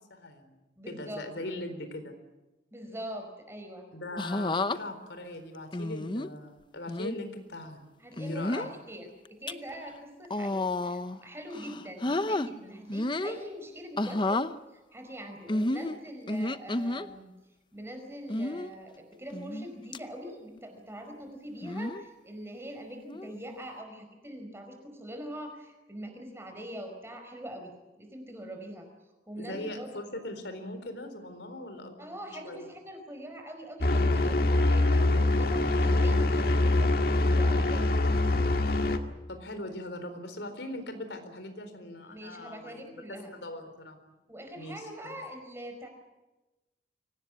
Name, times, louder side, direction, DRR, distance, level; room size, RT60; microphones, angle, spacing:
voice 1, 0.0-0.6 0.9-2.1 3.9-7.9 8.2-8.8 29.3-32.7 39.3-44.0 44.6-44.9, left 1 dB, 80° left, 8 dB, 4.1 m, -40 dB
voice 2, 0.8-1.5 2.7-3.9 8.0-14.4 14.7-17.3 17.7-27.7 28.0-28.9 29.3-29.9 32.0-34.4 34.7-36.9 37.2-37.9 42.0-43.3 44.3-45.9, equal, 15° right, 4 dB, 4.9 m, -43 dB
sound 1, 4.2-4.8 5.7-6.3 6.9-7.1 8.1-8.7 9.2-9.5 10.2-11.2 11.5-12.5 12.9-13.4 14.0-14.5 15.5-17.1 18.3-18.7 19.3-19.7 19.9-20.0 21.6-22.0 23.1-23.4, left 2 dB, 25° left, 0.7 m, -31 dB
sound 2, 33.8-39.0, left 2 dB, 55° left, 1.9 m, -24 dB
24.5 x 18.5 x 9.7 m, 1.1 s
head